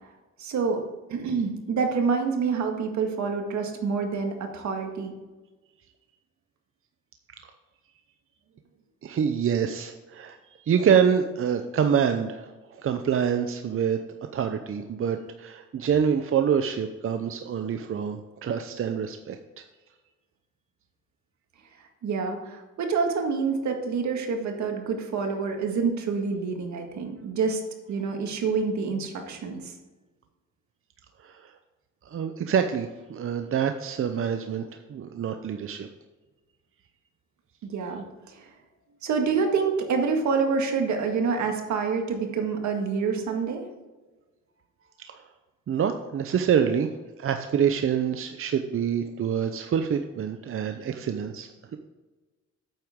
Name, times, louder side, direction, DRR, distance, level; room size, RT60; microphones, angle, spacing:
voice 1, 0.4-0.8 1.1-5.1 22.0-27.6 27.9-29.7 37.6-38.5 39.0-43.6, right 5 dB, 70° right, 3 dB, 1.8 m, -27 dB
voice 2, 9.0-19.6 31.2-31.5 32.0-35.9 45.1-45.2 45.7-46.9 47.2-51.8, right 7 dB, 45° right, 7 dB, 0.7 m, -26 dB
8.9 x 8.0 x 3.7 m, 1.2 s
cardioid pair, 90°, 30 cm